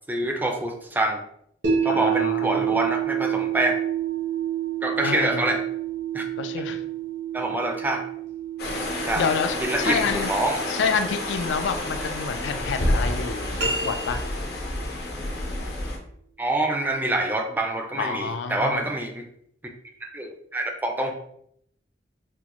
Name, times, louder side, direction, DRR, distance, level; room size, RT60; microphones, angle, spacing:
voice 1, 0.1-1.2 1.8-3.7 4.8-5.6 6.1-6.2 7.3-8.0 9.1-9.3 9.6-10.6 16.4-19.2 20.0-21.1, right 1 dB, 10° right, 3 dB, 0.3 m, -26 dB
sound 1, 1.6-13.7, right 9 dB, 85° right, 0.9 m, -30 dB
voice 2, 1.9-2.8 5.0-5.5 6.4-6.8 9.2-10.3 10.7-14.2 18.0-18.9, left 5 dB, 75° left, 7 dB, 0.3 m, -28 dB
sound 2, 8.6-16.0, left 1 dB, 60° left, 0.7 m, -29 dB
sound 3, 13.6-14.7, right 1 dB, 65° right, 0.6 m, -30 dB
3.5 x 2.1 x 2.9 m, 0.70 s
head